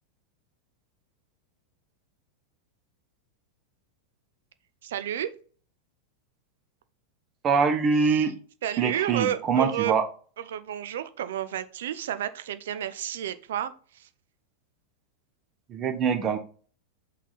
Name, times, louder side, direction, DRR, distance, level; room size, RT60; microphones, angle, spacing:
voice 1, 4.8-5.3 8.0-8.3 8.6-9.9 10.4-14.1, right 11 dB, 60° right, 12 dB, 0.5 m, -31 dB
voice 2, 7.4-8.3 8.8-10.0 15.7-16.4, right 5 dB, 30° right, 7 dB, 1.0 m, -24 dB
5.8 x 4.2 x 4.0 m, 0.41 s
figure-of-eight pair, 90°, 0 cm